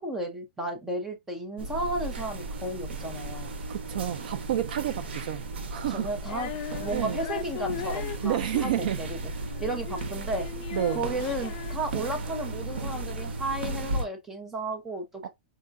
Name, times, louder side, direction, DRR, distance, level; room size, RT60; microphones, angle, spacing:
voice 1, 0.0-3.5 5.9-9.2 9.6-10.5 10.9-15.0, right 1 dB, 5° right, 0.6 m, -33 dB
sound 1, 1.6-14.1, right 2 dB, 80° right, 0.8 m, -35 dB
voice 2, 3.7-5.4 5.7-6.1 6.9-7.2 8.2-9.0 10.7-11.0 15.2-15.3, right 12 dB, 55° right, 0.4 m, -29 dB
Female singing, 6.2-12.5, left 12 dB, 35° left, 0.5 m, -39 dB
4.7 x 2.2 x 2.5 m
supercardioid pair, 170°, 6 cm